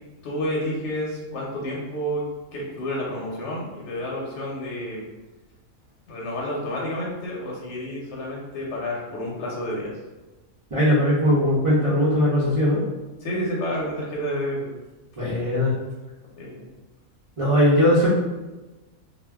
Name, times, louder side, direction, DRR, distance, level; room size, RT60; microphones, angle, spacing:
voice 1, 0.2-2.2 2.5-5.0 6.1-9.9 13.2-14.7 16.4-16.7, equal, 65° left, -4 dB, 0.9 m, -30 dB
voice 2, 10.7-12.8 15.2-15.7 17.4-18.1, equal, 60° right, -9 dB, 0.3 m, -19 dB
2.4 x 2.1 x 3.4 m, 1.1 s
omnidirectional pair, 1.4 m